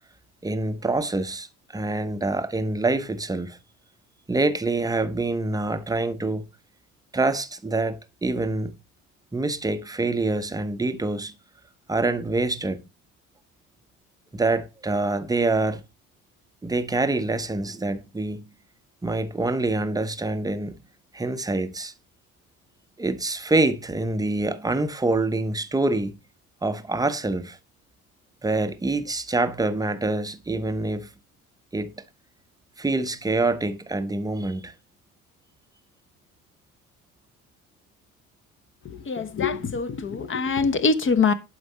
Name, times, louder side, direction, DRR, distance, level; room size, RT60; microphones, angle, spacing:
voice 1, 0.4-1.5 1.7-3.6 4.3-6.5 7.1-8.8 9.3-11.4 11.9-12.8 14.3-15.8 16.6-18.6 19.0-20.8 21.1-21.9 23.0-26.2 26.6-27.6 28.4-31.2 31.7-32.1 32.8-34.7, right 2 dB, 10° right, 0.9 m, -26 dB
voice 2, 39.1-41.3, left 4 dB, 30° left, 1.1 m, -23 dB
11.5 x 5.3 x 4.2 m
figure-of-eight pair, 55°, 43 cm